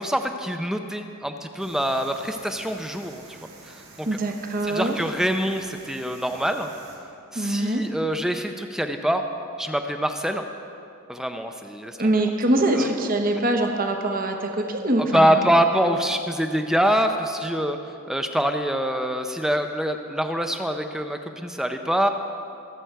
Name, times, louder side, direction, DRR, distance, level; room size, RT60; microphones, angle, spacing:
voice 1, 0.0-3.4 3.6-4.1 4.6-6.7 7.3-9.2 9.6-10.5 11.1-12.3 12.7-12.9 15.1-17.8 18.1-22.1, equal, 5° right, 6 dB, 0.5 m, -25 dB
sound 1, 1.6-7.0, right 3 dB, 85° right, 3.3 m, -48 dB
voice 2, 4.1-5.0 7.3-7.8 12.0-15.5, right 1 dB, 40° right, 4 dB, 1.0 m, -23 dB
23.0 x 7.8 x 4.6 m, 2.6 s
head